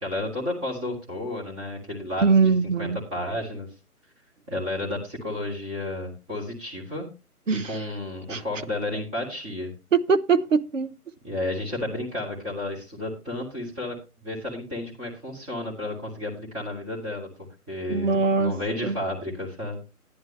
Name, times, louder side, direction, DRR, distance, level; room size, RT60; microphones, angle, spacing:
voice 1, 0.0-2.2 2.8-3.7 4.5-7.0 7.5-9.7 11.2-14.0 14.2-17.3 17.7-18.1 18.4-19.8, left 1 dB, 10° right, 2.4 m, -32 dB
voice 2, 2.2-3.0 7.5-7.9 8.3-8.4 9.9-10.9 17.9-18.5 18.8-19.0, right 5 dB, 55° right, 0.8 m, -22 dB
11.0 x 10.5 x 3.2 m
figure-of-eight pair, 150°, 45 cm